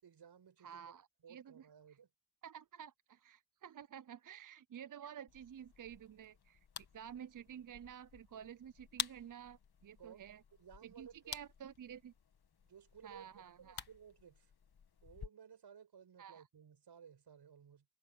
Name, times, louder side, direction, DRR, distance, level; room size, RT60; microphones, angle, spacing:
voice 1, 0.0-0.9 1.2-2.1 10.0-10.2 10.6-11.3 12.6-14.5 15.0-17.9, right 7 dB, 80° right, 6.6 m, -58 dB
voice 2, 0.6-2.0 2.4-6.6 6.9-10.4 10.8-12.1 13.0-13.8 16.2-16.4, right 9 dB, 50° right, 0.6 m, -52 dB
sound 1, 5.3-15.3, left 7 dB, 70° left, 1.9 m, -50 dB
cardioid pair, 65°, 39 cm